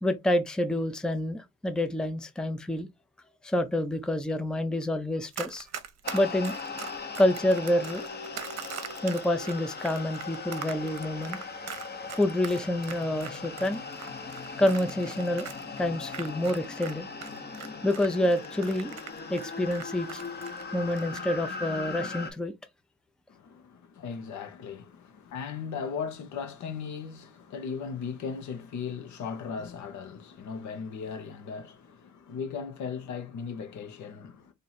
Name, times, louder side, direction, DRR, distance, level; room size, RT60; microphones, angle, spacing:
voice 1, 0.0-2.9 3.4-5.7 6.1-6.5 7.2-8.0 9.0-11.4 12.1-13.8 14.6-15.5 15.8-17.1 17.8-19.0 19.3-20.2 20.7-22.5, left 1 dB, 5° left, 0.5 m, -27 dB
Run, 5.3-16.9 17.2-20.6 20.9-21.2, right 8 dB, 60° right, 0.8 m, -41 dB
sound 1, 6.0-22.3, left 4 dB, 35° left, 0.9 m, -39 dB
voice 2, 23.3-34.5, left 6 dB, 70° left, 1.0 m, -37 dB
3.0 x 2.7 x 4.0 m
cardioid pair, 90°, 30 cm